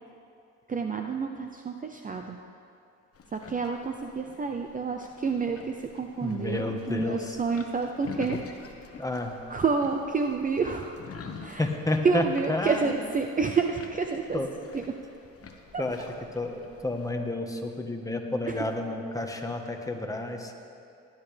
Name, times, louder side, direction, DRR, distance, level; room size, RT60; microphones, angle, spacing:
voice 1, 0.7-2.4 3.3-8.4 8.8-9.0 9.5-11.0 11.4-11.7 12.0-14.4 14.7-15.0 15.7-15.8 18.5-18.6, right 5 dB, 25° right, 4 dB, 0.6 m, -29 dB
sound 1, 3.1-17.1, left 5 dB, 45° left, 1.2 m, -46 dB
voice 2, 6.2-7.4 9.0-9.4 11.6-12.9 14.3-14.5 15.8-16.0 16.3-20.5, left 2 dB, 10° left, 3 dB, 1.3 m, -30 dB
18.5 x 10.5 x 3.4 m, 2.6 s
supercardioid pair, 85°, 33 cm